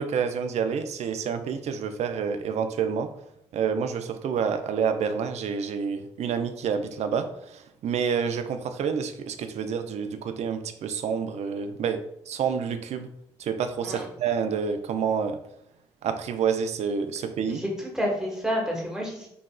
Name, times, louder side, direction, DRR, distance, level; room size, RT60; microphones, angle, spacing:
voice 1, 0.0-3.1 3.5-12.0 12.3-13.1 13.4-15.4 16.0-17.6, right 6 dB, 55° right, 8 dB, 0.4 m, -28 dB
voice 2, 17.5-19.3, equal, 5° right, -2 dB, 1.2 m, -29 dB
3.9 x 2.3 x 2.2 m, 0.77 s
hypercardioid pair, 40°, 13 cm